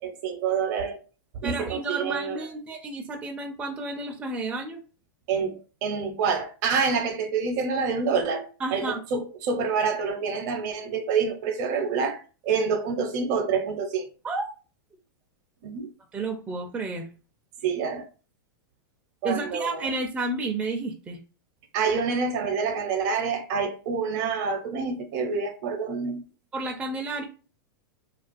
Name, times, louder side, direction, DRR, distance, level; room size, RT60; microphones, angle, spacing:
voice 1, 0.0-1.0 1.4-2.5 5.3-14.1 15.6-15.9 17.6-18.1 19.2-19.9 21.7-26.2, right 5 dB, 55° right, 0.6 m, -27 dB
voice 2, 1.4-4.8 8.6-9.0 14.2-14.5 16.1-17.1 19.2-21.2 26.5-27.2, right 3 dB, 10° right, 0.4 m, -31 dB
2.3 x 2.3 x 2.5 m
hypercardioid pair, 120°, 11 cm